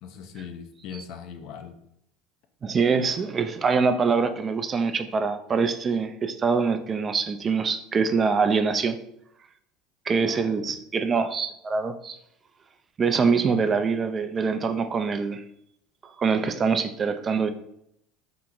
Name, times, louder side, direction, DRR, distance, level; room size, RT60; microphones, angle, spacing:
voice 1, 0.0-1.8 10.2-10.8, left 7 dB, 65° left, 7 dB, 0.5 m, -40 dB
voice 2, 2.6-9.0 10.1-12.2 13.0-15.4 16.2-17.5, right 5 dB, 35° right, 8 dB, 0.4 m, -24 dB
3.4 x 2.9 x 3.8 m, 0.75 s
hypercardioid pair, 85°, 0 cm